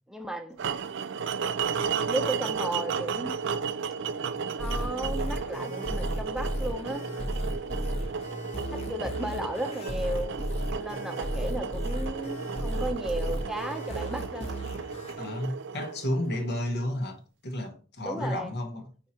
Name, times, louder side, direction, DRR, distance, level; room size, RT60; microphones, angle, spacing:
voice 1, 0.1-0.6 1.8-3.3 4.6-7.1 8.7-10.4 10.7-14.6 18.0-18.5, right 1 dB, ahead, 0.8 m, -34 dB
sound 1, 0.6-16.7, right 6 dB, 60° right, 0.4 m, -34 dB
sound 2, 4.6-15.1, equal, 30° left, 1.1 m, -34 dB
voice 2, 15.2-18.9, left 1 dB, 55° left, 1.2 m, -32 dB
5.5 x 4.3 x 4.3 m
head